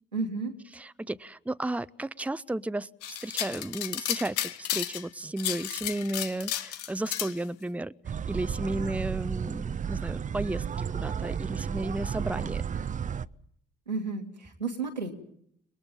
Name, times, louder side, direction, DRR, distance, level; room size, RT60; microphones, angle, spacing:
voice 1, 0.1-0.5 13.9-15.1, right 4 dB, 90° right, 2 dB, 2.4 m, -32 dB
voice 2, 0.7-7.9 8.3-12.6, right 1 dB, 5° right, 14 dB, 0.9 m, -34 dB
sound 1, 3.0-5.1 5.4-7.3, left 12 dB, 75° left, 1.1 m, -33 dB
sound 2, 8.0-13.3, right 7 dB, 35° right, 0.9 m, -33 dB
30.0 x 21.0 x 5.4 m, 0.68 s
figure-of-eight pair, 40°, 21 cm